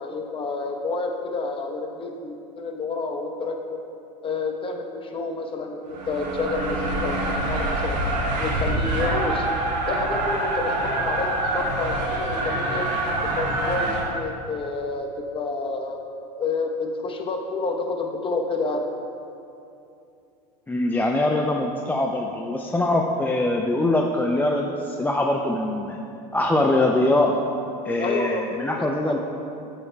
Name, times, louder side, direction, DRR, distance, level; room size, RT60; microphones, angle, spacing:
voice 1, 0.0-3.8 4.2-8.0 8.4-9.5 9.9-12.9 13.4-16.0 16.4-18.8 28.0-28.4 29.1-29.2, left 3 dB, 25° left, 3 dB, 1.0 m, -29 dB
sound 1, 5.9-14.0, right 1 dB, 85° right, 1.8 m, -25 dB
voice 2, 20.7-26.0 26.3-27.3 27.8-29.2, left 2 dB, 10° left, 1 dB, 0.5 m, -23 dB
13.0 x 8.4 x 2.3 m, 2.7 s
hypercardioid pair, 100°, 21 cm